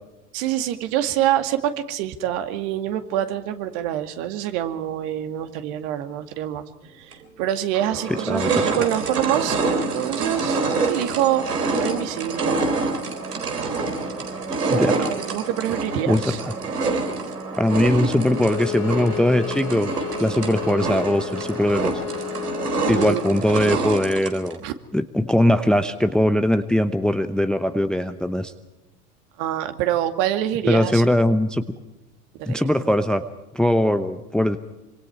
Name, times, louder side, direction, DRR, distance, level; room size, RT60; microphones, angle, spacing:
voice 1, 0.3-6.6 7.0-11.4 11.7-12.5 14.9-16.4 22.9-23.4 24.6-24.7 29.4-31.0 32.4-32.7, right 12 dB, 50° right, 8 dB, 2.3 m, -26 dB
sound 1, 7.1-7.2 7.7-24.6, right 3 dB, 75° right, 4.1 m, -26 dB
voice 2, 8.1-8.5 8.8-8.9 14.7-15.1 16.1-16.3 17.6-19.9 20.2-22.0 22.9-24.6 24.9-28.5 30.7-31.6 32.5-33.2 33.5-34.6, left 1 dB, ahead, 11 dB, 0.8 m, -21 dB
Bowed string instrument, 18.2-23.2, left 11 dB, 40° left, 3.0 m, -32 dB
26.0 x 25.0 x 4.7 m, 0.96 s
figure-of-eight pair, 85°, 46 cm